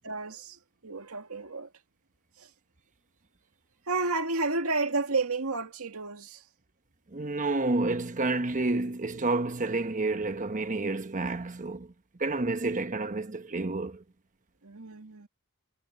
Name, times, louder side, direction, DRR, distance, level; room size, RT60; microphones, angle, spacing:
voice 1, 0.0-1.7 2.4-2.5 3.9-6.4 14.6-15.3, right 3 dB, 75° right, 2.1 m, -31 dB
voice 2, 7.1-11.9 12.2-14.0, right 2 dB, 35° right, 1.1 m, -29 dB
head